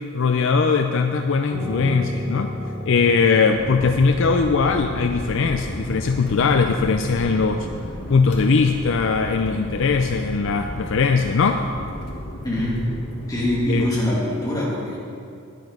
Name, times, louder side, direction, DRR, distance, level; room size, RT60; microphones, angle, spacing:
voice 1, 0.1-2.5 2.8-7.7 8.1-11.6 13.7-13.9, left 4 dB, 55° left, 6 dB, 0.4 m, -20 dB
Piano, 1.5-6.8, equal, 85° right, 2.7 m, -34 dB
sound 1, 3.5-13.9, equal, 80° left, 1.8 m, -33 dB
voice 2, 12.4-12.9 13.3-15.0, left 1 dB, 15° left, -6 dB, 2.3 m, -23 dB
10.0 x 9.2 x 5.3 m, 2.5 s
head